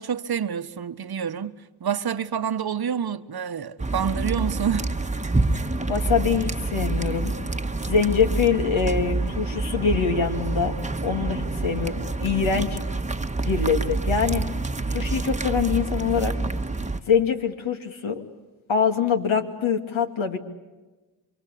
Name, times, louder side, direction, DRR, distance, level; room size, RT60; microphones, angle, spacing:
voice 1, 0.0-4.9, right 8 dB, 50° right, 1.2 m, -28 dB
sound 1, 3.8-17.0, right 3 dB, 15° right, 1.3 m, -27 dB
voice 2, 5.9-7.3 7.9-10.7 11.0-12.8 13.5-14.5 14.9-16.4 17.1-18.2 18.7-20.4, left 6 dB, 70° left, 2.7 m, -24 dB
28.0 x 23.5 x 8.5 m
supercardioid pair, 50°, 49 cm